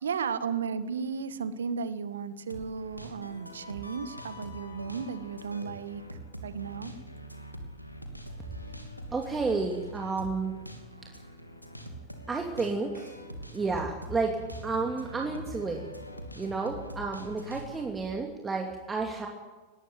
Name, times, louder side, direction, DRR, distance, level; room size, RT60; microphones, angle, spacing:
voice 1, 0.0-6.9, right 6 dB, 65° right, 14 dB, 1.6 m, -34 dB
sound 1, 2.5-17.9, equal, 90° left, 2.8 m, -44 dB
voice 2, 9.1-10.6 12.3-13.2 13.5-14.4 14.6-15.8 16.4-19.3, right 4 dB, 15° right, 1 dB, 2.6 m, -31 dB
23.0 x 19.0 x 9.2 m, 1.3 s
figure-of-eight pair, 90°, 0 cm